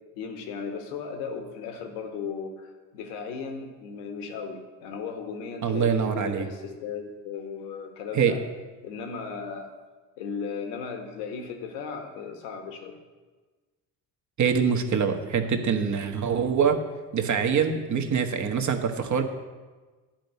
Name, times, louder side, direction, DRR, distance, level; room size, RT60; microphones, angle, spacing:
voice 1, 0.1-8.4 8.8-9.7 10.2-13.0, left 5 dB, 65° left, 4 dB, 1.7 m, -36 dB
voice 2, 5.6-6.5 8.1-8.3 14.4-16.8 17.1-19.2, right 6 dB, 35° right, 5 dB, 1.4 m, -24 dB
10.5 x 5.3 x 8.2 m, 1.3 s
figure-of-eight pair, 55°, 49 cm